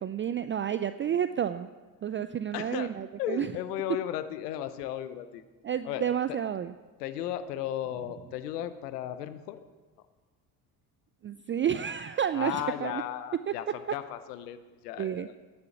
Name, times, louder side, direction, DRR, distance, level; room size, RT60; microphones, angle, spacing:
voice 1, 0.0-1.7 2.0-3.5 5.6-6.7 11.2-13.0 15.0-15.3, right 9 dB, 30° right, 12 dB, 0.4 m, -30 dB
voice 2, 2.5-2.9 3.2-5.4 5.8-6.4 7.0-9.6 12.3-15.3, left 11 dB, 85° left, 12 dB, 0.8 m, -35 dB
10.5 x 6.9 x 8.4 m, 1.3 s
hypercardioid pair, 60°, 46 cm